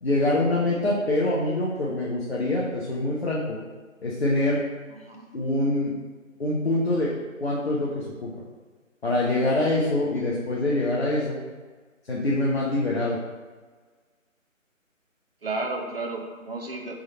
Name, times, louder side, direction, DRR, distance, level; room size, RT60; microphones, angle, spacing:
voice 1, 0.0-3.6 4.0-4.6 5.3-5.9 6.4-7.1 7.4-8.3 9.0-11.4 12.1-13.2, left 1 dB, 50° left, -6 dB, 0.8 m, -24 dB
voice 2, 4.9-5.3 15.4-16.9, right 3 dB, 45° right, 2 dB, 0.6 m, -32 dB
3.7 x 3.1 x 4.1 m, 1.4 s
figure-of-eight pair, 155°, 40 cm